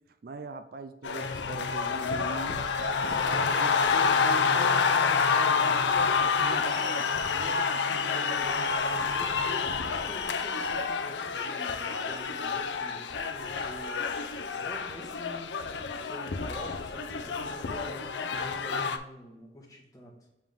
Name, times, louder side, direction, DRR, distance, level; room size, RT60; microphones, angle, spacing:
voice 1, 0.2-2.6 3.2-6.2 6.4-7.1 13.4-13.5, right 3 dB, 55° right, 10 dB, 0.4 m, -41 dB
sound 1, 1.0-19.0, left 5 dB, 90° left, 0.5 m, -28 dB
voice 2, 3.2-4.0 4.8-5.6 7.2-20.1, equal, 20° left, -2 dB, 1.5 m, -46 dB
7.3 x 3.7 x 3.6 m, 0.93 s
head